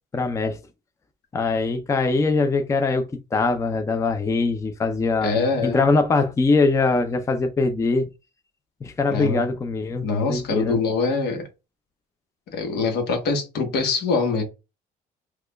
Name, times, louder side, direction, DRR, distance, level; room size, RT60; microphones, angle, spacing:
voice 1, 0.1-0.6 1.3-5.4 5.6-8.1 8.8-10.8, left 3 dB, 20° left, 0.4 m, -22 dB
voice 2, 5.2-5.9 9.1-9.5 10.0-11.5 12.5-14.4, left 4 dB, 75° left, 1.0 m, -24 dB
4.7 x 2.3 x 2.2 m
cardioid pair, 110°, 17 cm